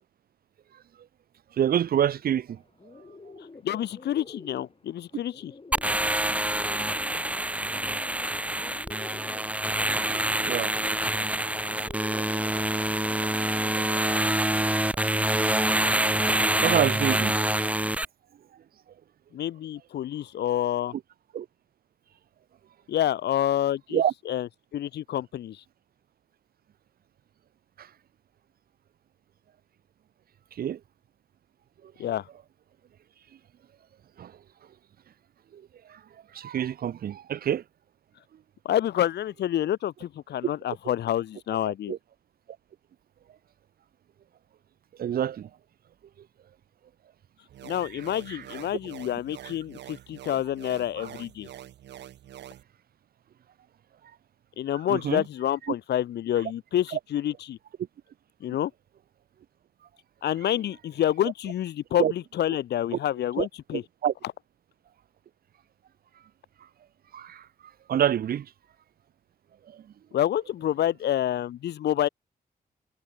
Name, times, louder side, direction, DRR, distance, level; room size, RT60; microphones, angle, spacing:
voice 1, 1.6-2.6 10.1-10.8 11.1-11.3 11.9-12.6 13.0-13.3 13.8-14.3 15.6-17.4 21.3-21.5 23.9-24.1 27.8-27.9 30.5-30.8 31.8-31.9 34.2-34.3 35.5-35.6 35.9-36.0 36.3-37.6 41.9-42.0 45.0-45.5 47.9-48.0 48.3-48.4 51.0-51.1 54.9-55.2 62.0-62.1 63.4-63.5 63.7-64.1 67.1-67.5 67.9-68.5 69.7-69.8, right 9 dB, 60° right, 0.5 m, -28 dB
Bird, 2.5-14.1, left 3 dB, 30° left, 2.5 m, -49 dB
voice 2, 3.6-5.5 19.3-20.9 22.9-25.6 32.0-32.3 38.6-41.9 47.6-51.5 54.6-57.6 58.4-58.7 60.2-63.8 70.1-72.1, left 11 dB, 75° left, 0.7 m, -28 dB
sound 1, 5.7-18.0, right 1 dB, 10° right, 0.7 m, -26 dB
sound 2, 47.5-52.6, right 12 dB, 85° right, 5.5 m, -45 dB
supercardioid pair, 50°, 18 cm